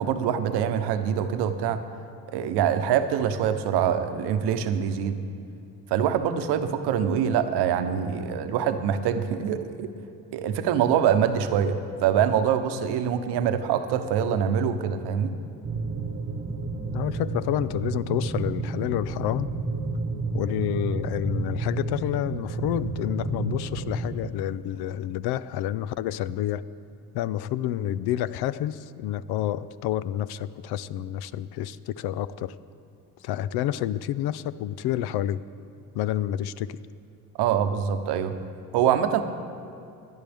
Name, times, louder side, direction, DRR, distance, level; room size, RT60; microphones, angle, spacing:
voice 1, 0.0-1.8 2.3-5.2 5.9-9.9 10.3-15.3 37.4-38.3 38.7-39.2, right 8 dB, 75° right, 9 dB, 0.9 m, -24 dB
sound 1, 15.6-24.3, right 3 dB, 30° right, 1.1 m, -31 dB
voice 2, 16.9-19.5 20.3-26.6 27.1-32.6 33.2-35.4 35.9-36.8, left 12 dB, 70° left, 17 dB, 0.5 m, -29 dB
17.5 x 10.5 x 3.5 m, 2.6 s
supercardioid pair, 75°, 40 cm